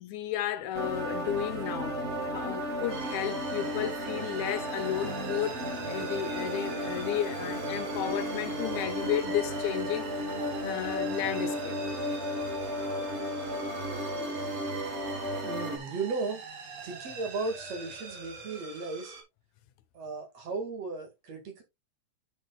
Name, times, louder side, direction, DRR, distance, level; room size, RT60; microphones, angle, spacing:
voice 1, 0.0-2.0 2.3-10.1 10.6-11.8 14.9-15.0, left 11 dB, 80° left, 2.1 m, -33 dB
sound 1, 0.7-15.8, equal, 40° right, 1.0 m, -34 dB
sound 2, 2.9-19.2, right 4 dB, 85° right, 3.6 m, -44 dB
voice 2, 15.4-16.4 16.8-19.1 19.9-21.6, right 3 dB, 60° right, 3.1 m, -35 dB
10.5 x 6.3 x 2.3 m
omnidirectional pair, 3.4 m